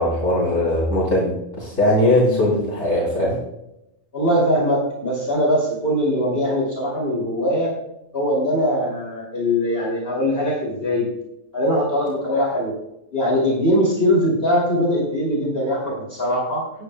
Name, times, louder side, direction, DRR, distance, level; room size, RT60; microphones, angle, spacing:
voice 1, 0.0-3.4, left 1 dB, 65° left, -6 dB, 3.4 m, -20 dB
voice 2, 4.1-7.7 8.1-11.1 11.5-12.7 13.1-16.6, equal, 45° left, -3 dB, 2.9 m, -21 dB
18.5 x 9.4 x 2.2 m, 0.84 s
omnidirectional pair, 1.4 m